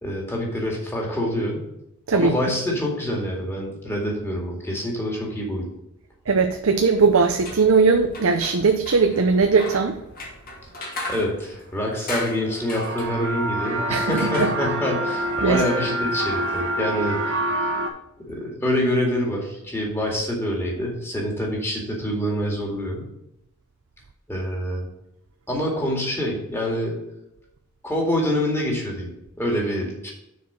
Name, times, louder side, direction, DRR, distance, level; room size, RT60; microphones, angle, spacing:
voice 1, 0.0-1.6 2.1-5.7 11.1-17.2 18.3-23.1 24.3-24.9 25.5-26.9 27.8-29.1 29.4-30.1, equal, 10° left, -2 dB, 2.1 m, -26 dB
voice 2, 6.3-10.0 13.9-14.5 15.4-15.6, right 4 dB, 75° right, 6 dB, 0.6 m, -19 dB
sound 1, 7.3-17.3, left 2 dB, 40° left, 2.2 m, -38 dB
sound 2, 12.1-17.9, right 1 dB, 60° right, 1.2 m, -27 dB
6.7 x 4.8 x 6.9 m, 0.85 s
head